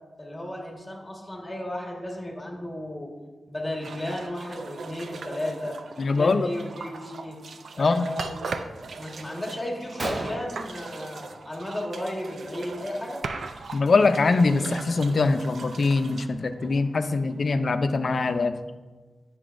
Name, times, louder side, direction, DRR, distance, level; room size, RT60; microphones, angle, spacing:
voice 1, 0.2-3.1 3.5-5.7 6.1-7.4 7.7-8.5 8.8-13.2, left 1 dB, 15° left, -1 dB, 1.5 m, -34 dB
sound 1, 3.8-17.3, right 4 dB, 75° right, 0.4 m, -39 dB
voice 2, 6.0-6.5 7.8-8.1 13.7-18.5, left 3 dB, 55° left, 9 dB, 0.4 m, -23 dB
Gunshot gunfire, 9.3-9.4 9.7-9.8 10.0-11.6 11.9-12.3 12.5-12.8 13.6-13.7 14.3-14.4 14.8-16.4, right 1 dB, 45° right, 0.9 m, -36 dB
9.7 x 7.0 x 2.5 m, 1.3 s
wide cardioid pair, 95°, 0 cm